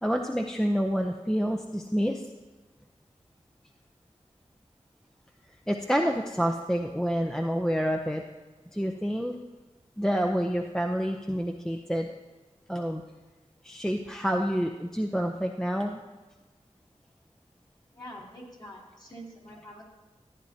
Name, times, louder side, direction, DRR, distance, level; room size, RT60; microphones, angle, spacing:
voice 1, 0.0-2.2 5.7-8.2 8.7-9.4 10.0-12.1 12.7-13.0 13.6-16.0, equal, 5° left, 3 dB, 0.6 m, -28 dB
voice 2, 17.9-19.8, equal, 35° left, -4 dB, 2.6 m, -45 dB
14.5 x 9.3 x 2.8 m, 1.2 s
wide cardioid pair, 60°, 13 cm